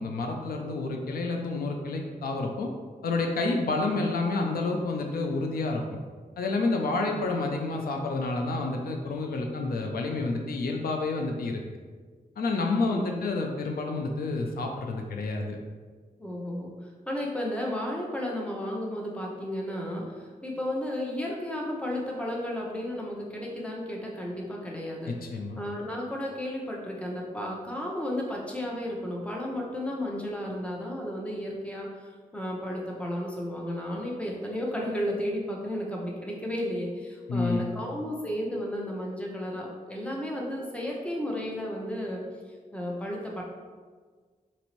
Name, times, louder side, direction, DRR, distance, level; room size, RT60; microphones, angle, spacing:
voice 1, 0.0-2.7 3.0-6.0 6.4-11.6 12.4-15.6 25.1-25.6 37.3-37.7, left 3 dB, 85° left, 2 dB, 0.4 m, -29 dB
voice 2, 16.2-25.1 25.6-42.2 42.5-43.4, left 1 dB, 10° left, -2 dB, 0.7 m, -33 dB
4.1 x 2.6 x 3.0 m, 1.5 s
wide cardioid pair, 80°, 15 cm